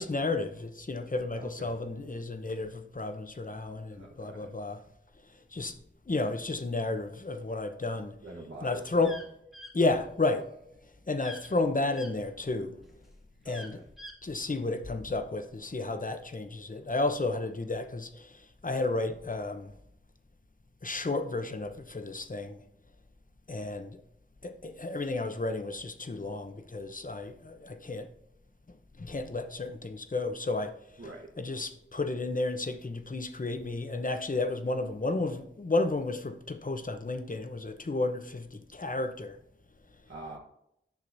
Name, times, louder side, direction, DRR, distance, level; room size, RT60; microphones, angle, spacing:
voice 1, 0.0-4.8 5.5-5.8 6.1-8.1 8.6-9.2 9.7-10.5 11.1-12.8 13.5-13.8 14.2-19.7 20.8-22.6 23.5-24.0 24.4-28.1 29.0-30.7 31.4-39.4, left 2 dB, 40° left, 0.8 m, -32 dB
voice 2, 1.3-1.7 4.0-4.5 8.2-9.1 13.4-13.9 31.0-31.3 40.1-40.4, right 2 dB, 80° right, 1.2 m, -45 dB
sound 1, 9.0-9.3 9.5-9.7 11.2-11.5 11.9-12.1 13.5-14.2, left 1 dB, ahead, 1.1 m, -45 dB
10.5 x 6.3 x 2.7 m
wide cardioid pair, 45°, 21 cm